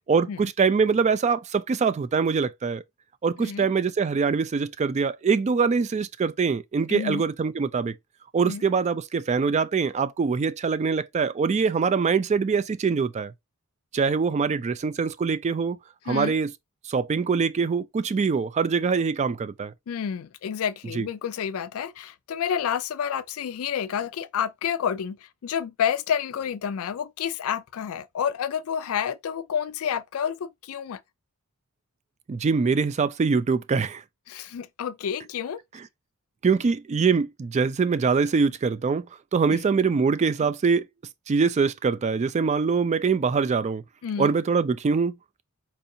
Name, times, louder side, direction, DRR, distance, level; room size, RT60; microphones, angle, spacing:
voice 1, 0.1-2.8 3.2-7.9 8.3-13.3 13.9-15.8 16.1-16.5 16.9-19.7 21.0-21.1 32.3-34.0 36.4-39.1 39.3-40.9 41.3-43.8 44.2-45.4, right 5 dB, 30° right, 0.3 m, -23 dB
voice 2, 6.9-7.2 8.4-8.6 16.1-16.4 19.9-31.0 34.3-35.6 39.5-39.6 40.4-40.5 44.0-44.3, left 8 dB, 70° left, 0.4 m, -29 dB
4.4 x 2.6 x 2.6 m
head